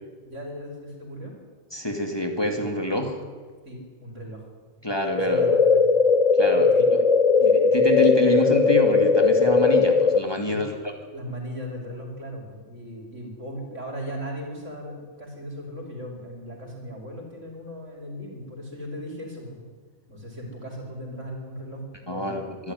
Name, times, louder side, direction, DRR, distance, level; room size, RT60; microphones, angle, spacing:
voice 1, 0.2-1.3 3.7-4.4 5.1-5.8 6.5-6.8 10.5-10.7 11.1-19.6 20.1-22.5, equal, 75° right, 1 dB, 5.3 m, -37 dB
voice 2, 1.7-3.2 4.8-5.5 6.4-7.1 7.4-10.8 22.1-22.7, left 1 dB, 20° left, 3 dB, 2.5 m, -27 dB
sound 1, 5.2-10.2, left 4 dB, 35° left, 0.8 m, -18 dB
24.0 x 13.5 x 9.8 m, 1.4 s
omnidirectional pair, 1.3 m